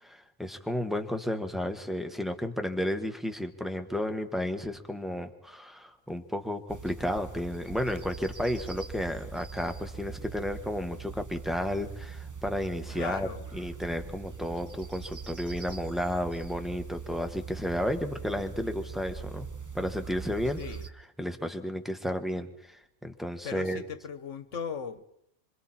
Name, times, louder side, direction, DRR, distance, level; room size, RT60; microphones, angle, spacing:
voice 1, 0.0-13.3 13.5-19.5 19.7-20.6 21.2-23.8, equal, ahead, 5 dB, 1.4 m, -32 dB
sound 1, 6.7-20.9, right 5 dB, 20° right, 0.7 m, -42 dB
voice 2, 12.9-13.4 20.6-20.9 23.4-25.0, left 6 dB, 80° left, 13 dB, 1.5 m, -37 dB
26.5 x 25.5 x 4.4 m, 0.74 s
omnidirectional pair, 1.2 m